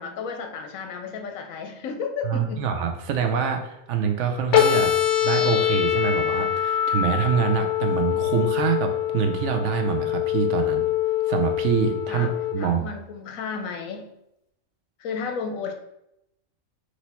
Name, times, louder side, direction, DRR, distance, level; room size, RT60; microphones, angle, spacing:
voice 1, 0.0-2.6 12.1-14.1 15.0-15.7, left 5 dB, 80° left, 5 dB, 1.1 m, -33 dB
voice 2, 2.2-5.0 5.2-10.9 11.3-12.9, right 7 dB, 70° right, 5 dB, 0.9 m, -25 dB
sound 1, 4.5-12.5, left 10 dB, 65° left, 1.0 m, -24 dB
4.0 x 3.1 x 4.1 m, 0.82 s
omnidirectional pair, 1.4 m